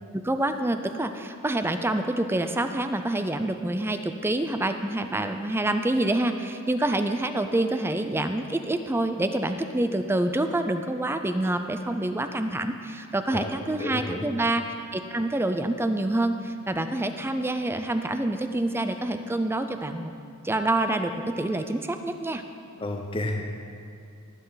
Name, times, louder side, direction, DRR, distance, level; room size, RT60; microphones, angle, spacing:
voice 1, 0.2-14.6 14.9-20.1 20.4-22.4, right 1 dB, 10° right, 8 dB, 0.4 m, -27 dB
voice 2, 13.8-14.2 22.8-23.5, left 1 dB, 25° left, 2 dB, 0.7 m, -31 dB
19.5 x 7.8 x 4.0 m, 2.4 s
head